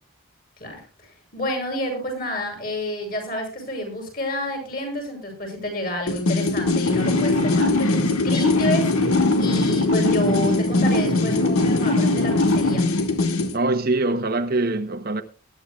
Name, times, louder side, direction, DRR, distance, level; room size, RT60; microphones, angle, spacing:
voice 1, 0.6-8.9 9.4-12.8, left 1 dB, 40° left, 7.4 m, -29 dB
sound 1, 6.1-13.6, left 2 dB, 80° left, 1.6 m, -20 dB
voice 2, 13.5-15.2, right 2 dB, 40° right, 1.0 m, -23 dB
21.5 x 11.5 x 2.4 m
head